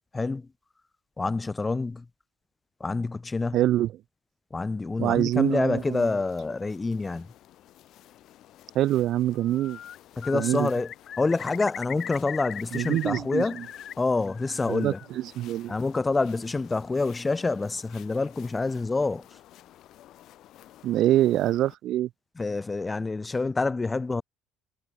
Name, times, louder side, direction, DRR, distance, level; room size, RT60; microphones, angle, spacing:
voice 1, 0.1-0.5 1.2-2.1 2.8-3.6 4.5-7.3 10.2-13.7 14.0-15.0 15.7-19.3 22.4-24.2, left 3 dB, 15° left, 0.4 m, -27 dB
voice 2, 3.5-3.9 5.0-6.0 8.7-9.8 10.3-10.7 12.7-13.4 14.7-15.7 20.8-22.1, right 13 dB, 55° right, 0.4 m, -25 dB
sound 1, 5.3-21.7, left 13 dB, 60° left, 1.9 m, -53 dB
Bird, 9.4-10.0 10.2-13.9 14.3-15.1, left 9 dB, 40° left, 1.2 m, -39 dB
cardioid pair, 140°, 0 cm